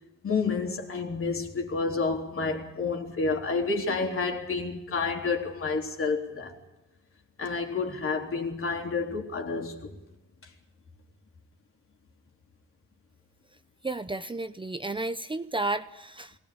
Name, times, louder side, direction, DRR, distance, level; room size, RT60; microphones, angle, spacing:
voice 1, 0.2-6.5 7.4-10.0, left 4 dB, 45° left, 3.8 m, -29 dB
voice 2, 13.8-16.3, right 2 dB, 15° right, 0.8 m, -32 dB
22.5 x 18.0 x 8.7 m
cardioid pair, 90°, 30 cm